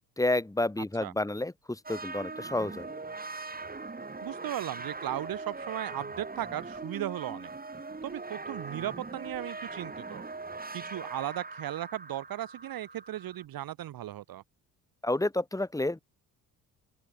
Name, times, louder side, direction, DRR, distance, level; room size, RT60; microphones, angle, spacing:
voice 1, 0.2-2.9 15.0-16.0, left 2 dB, 5° left, 1.7 m, -30 dB
sound 1, 1.8-13.4, right 3 dB, 20° right, 4.5 m, -41 dB
voice 2, 4.2-7.5 8.0-10.2 10.7-14.4, right 13 dB, 45° right, 1.5 m, -36 dB
open air
figure-of-eight pair, 50°, 48 cm